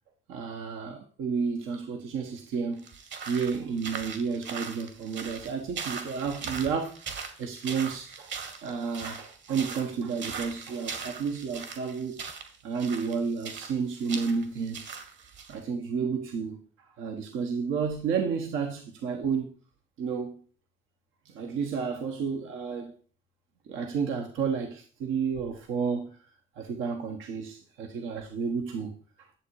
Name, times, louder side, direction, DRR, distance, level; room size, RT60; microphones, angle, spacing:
voice 1, 0.3-2.8 3.3-7.1 7.4-8.3 8.6-12.2 12.6-14.9 15.5-16.6 17.0-19.5 20.0-20.4 21.2-22.9 23.7-26.1 26.6-28.9 29.2-29.3, right 5 dB, 90° right, 1.5 m, -31 dB
sound 1, 2.8-15.6, right 5 dB, 65° right, 2.3 m, -40 dB
11.0 x 7.5 x 4.8 m
cardioid pair, 90°, 20 cm